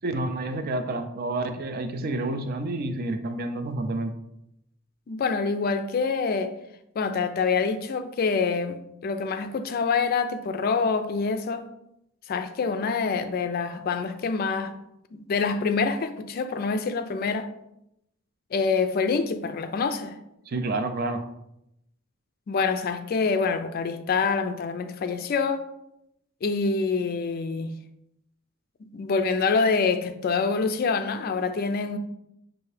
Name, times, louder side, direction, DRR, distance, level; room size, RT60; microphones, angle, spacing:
voice 1, 0.0-4.1 20.5-21.2, right 2 dB, 45° right, 0.4 m, -29 dB
voice 2, 5.1-6.5 7.0-11.7 12.3-14.8 15.1-17.5 18.5-20.2 22.5-25.6 26.4-27.7 28.9-32.0, left 4 dB, 45° left, 0.3 m, -26 dB
5.6 x 2.6 x 3.2 m
head